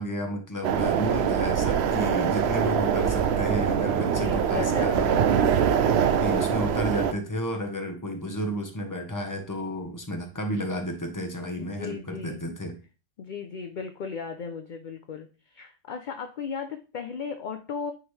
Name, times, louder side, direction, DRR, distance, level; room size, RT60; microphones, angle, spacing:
voice 1, 0.0-5.1 6.2-12.7, equal, 15° left, 3 dB, 1.1 m, -32 dB
sound 1, 0.6-7.1, right 8 dB, 70° right, 0.8 m, -23 dB
voice 2, 4.0-5.3 11.6-12.4 13.2-17.9, left 6 dB, 55° left, 7 dB, 0.6 m, -36 dB
8.9 x 3.7 x 3.2 m, 0.34 s
omnidirectional pair, 1.2 m